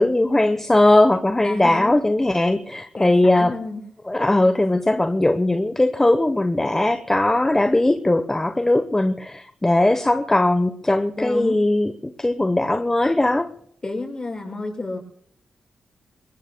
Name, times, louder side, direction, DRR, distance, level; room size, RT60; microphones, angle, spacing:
voice 1, 0.0-3.5 4.1-13.5, left 1 dB, 20° left, 1.0 m, -19 dB
voice 2, 1.4-2.0 2.9-3.8 11.2-11.6 13.8-15.0, left 2 dB, 35° left, 6.9 m, -30 dB
26.5 x 21.5 x 2.3 m
cardioid pair, 55°, 2 cm